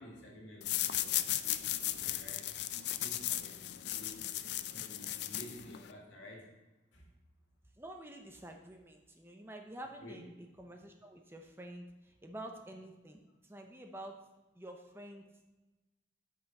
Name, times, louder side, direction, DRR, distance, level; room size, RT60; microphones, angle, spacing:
voice 1, 0.0-2.6 3.0-6.6 6.9-7.1 10.0-10.3, equal, 85° left, -1 dB, 2.1 m, -52 dB
sound 1, 0.6-5.9, left 13 dB, 60° left, 0.4 m, -36 dB
voice 2, 7.8-10.3 10.6-14.2 14.6-15.2, right 1 dB, 10° right, 3 dB, 0.6 m, -48 dB
9.5 x 5.7 x 4.1 m, 1.1 s
head